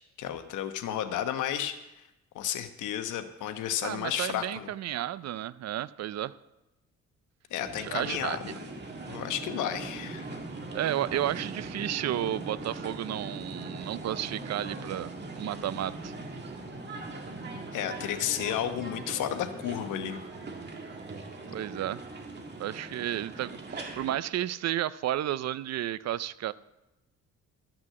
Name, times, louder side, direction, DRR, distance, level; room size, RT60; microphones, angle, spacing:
voice 1, 0.2-1.8 2.3-4.7 7.5-8.6 9.1-10.4 17.7-20.2, left 10 dB, 85° left, 8 dB, 1.1 m, -32 dB
voice 2, 3.8-6.3 7.8-8.4 10.7-15.1 15.4-16.1 21.5-22.0 22.6-26.5, right 12 dB, 60° right, 18 dB, 0.5 m, -32 dB
sound 1, 7.6-24.2, right 2 dB, 35° right, 1.9 m, -40 dB
13.0 x 6.1 x 7.6 m, 0.95 s
cardioid pair, 90°, 30 cm